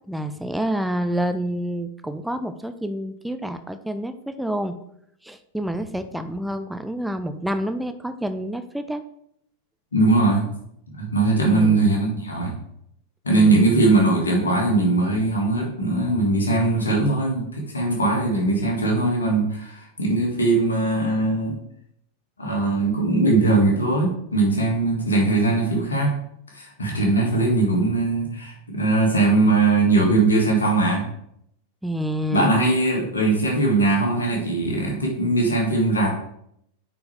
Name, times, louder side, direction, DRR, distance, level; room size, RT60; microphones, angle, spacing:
voice 1, 0.1-4.7 5.2-9.0 11.4-11.9 13.3-13.9 31.8-32.6, right 1 dB, ahead, 9 dB, 0.5 m, -28 dB
voice 2, 9.9-10.5 10.9-12.5 13.2-21.6 22.4-26.1 26.5-31.0 32.3-36.2, right 2 dB, 75° left, 0 dB, 2.2 m, -20 dB
9.4 x 4.6 x 3.4 m, 0.72 s
figure-of-eight pair, 90°, 0 cm